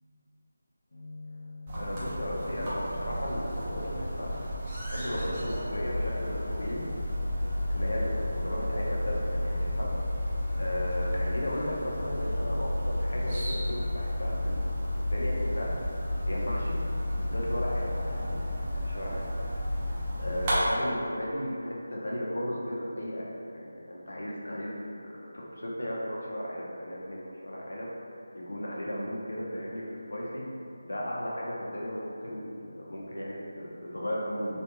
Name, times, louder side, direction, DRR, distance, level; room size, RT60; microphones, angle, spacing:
voice 1, 0.9-4.4 4.8-6.8 7.7-9.9 10.5-15.8 16.3-16.8 17.1-18.4 18.7-19.3 19.8-23.2 23.5-27.9 28.3-30.5 30.8-34.6, equal, 70° left, -4 dB, 0.7 m, -35 dB
sound 1, 1.7-20.6, left 1 dB, 25° right, 0.7 m, -31 dB
3.2 x 2.4 x 2.9 m, 2.6 s
figure-of-eight pair, 160°, 0 cm